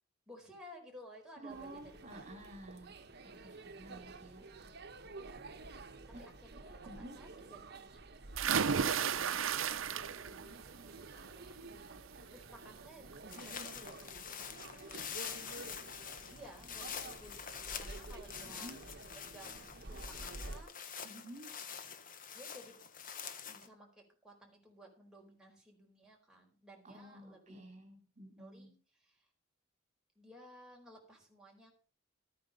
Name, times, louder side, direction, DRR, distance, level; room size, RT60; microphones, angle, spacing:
voice 1, 0.3-1.9 6.2-11.6 12.3-15.1 16.2-18.7 19.1-21.1 22.3-22.8 23.5-27.6 28.4-29.3 30.2-31.7, equal, 5° right, -1 dB, 4.6 m, -57 dB
voice 2, 1.4-2.9 3.2-4.4 6.8-7.2 18.4-18.8 21.0-21.5 26.8-28.7, right 1 dB, 35° right, 2 dB, 3.1 m, -51 dB
sound 1, 1.5-20.6, right 2 dB, 55° right, 1.2 m, -51 dB
sound 2, 8.4-10.4 10.8-11.3 12.7-12.8 13.2-13.3, right 7 dB, 80° right, 0.7 m, -33 dB
sound 3, 13.3-23.7, left 7 dB, 45° left, 1.4 m, -46 dB
14.0 x 9.4 x 5.3 m, 0.37 s
head